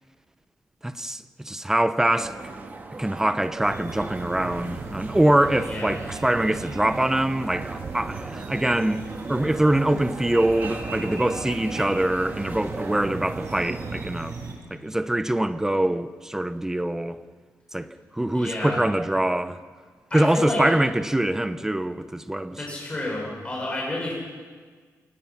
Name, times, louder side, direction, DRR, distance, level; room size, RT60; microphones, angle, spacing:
voice 1, 0.8-2.6 3.0-14.4 14.7-17.2 17.7-17.9 18.1-19.6 20.1-22.6, right 1 dB, 10° right, 0.9 m, -24 dB
sound 1, 2.2-14.0, right 3 dB, 30° right, 1.8 m, -38 dB
sound 2, 3.6-14.5, right 4 dB, 55° right, 4.9 m, -38 dB
voice 2, 5.6-6.0 18.3-18.8 20.1-20.6 22.5-24.1, left 2 dB, 20° left, 6.2 m, -30 dB
28.0 x 18.5 x 6.0 m
wide cardioid pair, 145°, 6 cm